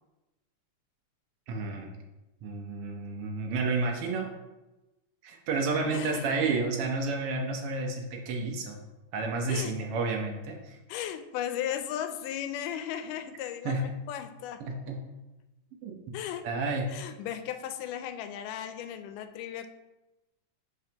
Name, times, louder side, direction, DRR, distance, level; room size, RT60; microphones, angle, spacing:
voice 1, 1.5-2.0 2.4-4.3 5.2-8.8 9.1-10.8 13.6-13.8 14.6-15.0 15.8-15.9 16.4-16.9, right 3 dB, 75° right, 1 dB, 1.3 m, -31 dB
voice 2, 5.9-6.5 9.5-9.7 10.9-14.6 16.1-16.4 16.9-19.7, left 10 dB, 85° left, 8 dB, 2.1 m, -36 dB
9.5 x 4.7 x 2.9 m, 1.0 s
omnidirectional pair, 3.7 m